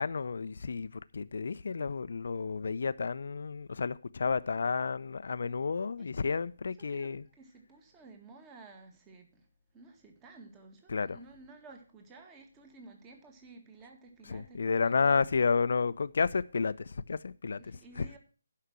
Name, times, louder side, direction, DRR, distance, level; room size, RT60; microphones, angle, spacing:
voice 1, 0.0-7.2 10.9-11.2 14.3-17.6 18.0-18.1, left 5 dB, 60° left, 0.6 m, -31 dB
voice 2, 6.0-6.4 6.8-15.3 17.6-18.2, right 3 dB, 15° right, 1.9 m, -54 dB
11.5 x 5.7 x 6.2 m
figure-of-eight pair, 145°, 0 cm